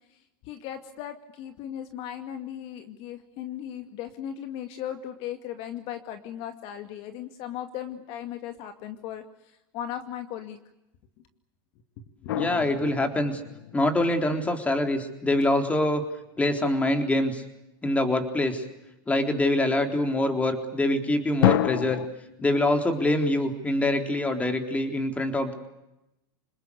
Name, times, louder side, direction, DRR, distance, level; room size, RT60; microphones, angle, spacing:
voice 1, 0.4-10.6 12.2-12.3, left 10 dB, 50° left, 7 dB, 2.3 m, -37 dB
sound 1, 12.3-14.4 21.4-22.1, left 13 dB, 85° left, 1.2 m, -27 dB
voice 2, 12.3-13.4 13.7-16.0 16.4-17.4 17.8-18.6 19.1-22.0 22.4-25.5, left 1 dB, 10° left, 5 dB, 3.8 m, -25 dB
28.0 x 20.0 x 8.4 m, 0.90 s
supercardioid pair, 125°, 12 cm